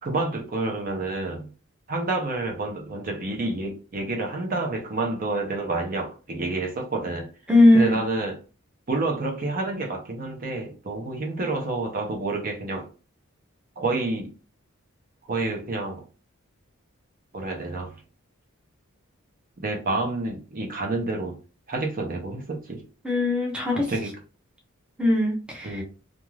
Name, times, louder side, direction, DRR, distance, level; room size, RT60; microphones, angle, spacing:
voice 1, 0.0-1.5 1.9-7.3 7.7-8.4 8.9-12.9 13.8-14.3 15.3-16.0 17.3-17.9 19.6-21.4 21.7-22.8 23.7-24.1 25.6-25.8, right 2 dB, 40° right, 0.7 m, -29 dB
voice 2, 7.5-8.0 23.0-23.8 25.0-25.8, left 2 dB, 5° right, 0.6 m, -19 dB
2.5 x 2.3 x 3.1 m
head